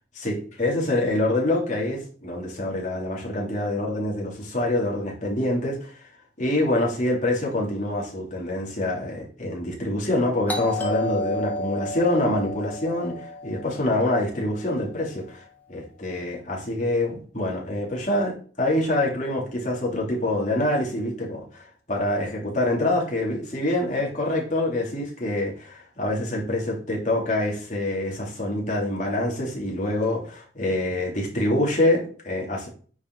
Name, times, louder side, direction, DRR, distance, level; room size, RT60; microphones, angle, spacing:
voice 1, 0.1-6.0 6.4-15.4 15.7-32.7, left 1 dB, 40° left, -2 dB, 3.1 m, -26 dB
Doorbell, 10.5-15.1, left 1 dB, 10° left, 1.4 m, -32 dB
9.6 x 5.2 x 4.0 m, 0.42 s
head